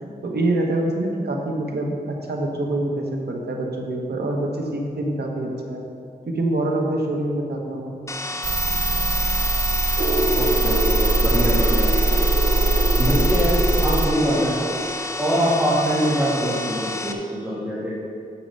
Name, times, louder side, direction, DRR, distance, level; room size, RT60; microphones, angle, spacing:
voice 1, 0.2-5.8 6.3-7.9, right 1 dB, 85° right, 1 dB, 1.2 m, -25 dB
sound 1, 8.1-17.1, left 2 dB, 20° left, 0.7 m, -31 dB
sound 2, 8.4-14.1, right 2 dB, 35° right, 0.5 m, -21 dB
sound 3, 10.0-15.8, right 1 dB, 50° right, 1.1 m, -28 dB
voice 2, 10.4-11.9 13.0-14.5 15.2-17.9, equal, 10° right, -10 dB, 2.0 m, -23 dB
8.6 x 6.4 x 5.6 m, 2.4 s
wide cardioid pair, 85°, 16 cm